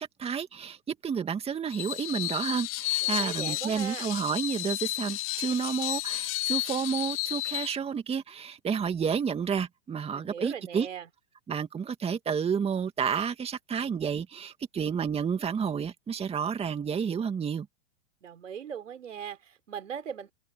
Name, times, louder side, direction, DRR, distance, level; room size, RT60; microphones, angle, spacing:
voice 1, 0.0-10.9 11.5-17.7, right 7 dB, 15° right, 2.2 m, -30 dB
Screech, 1.7-7.8, left 19 dB, 35° left, 1.7 m, -32 dB
voice 2, 3.0-4.1 10.1-11.1 18.2-20.3, right 8 dB, 85° right, 5.1 m, -39 dB
hypercardioid pair, 120°, 36 cm